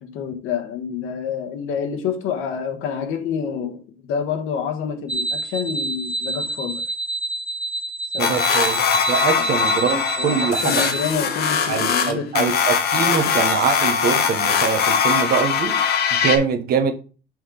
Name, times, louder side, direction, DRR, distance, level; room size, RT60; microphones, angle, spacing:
voice 1, 0.0-6.8 8.1-8.4 9.3-9.5 10.2-12.5 13.0-13.3 16.2-16.3, left 7 dB, 85° left, 1.4 m, -28 dB
sound 1, 5.1-11.1, right 2 dB, 5° right, 0.5 m, -28 dB
sound 2, 8.2-16.4, left 7 dB, 50° left, 1.1 m, -21 dB
voice 2, 8.2-8.8 9.1-10.7 11.7-15.8 16.1-17.0, right 6 dB, 45° right, 1.0 m, -23 dB
6.1 x 3.9 x 4.9 m
cardioid pair, 170°, 21 cm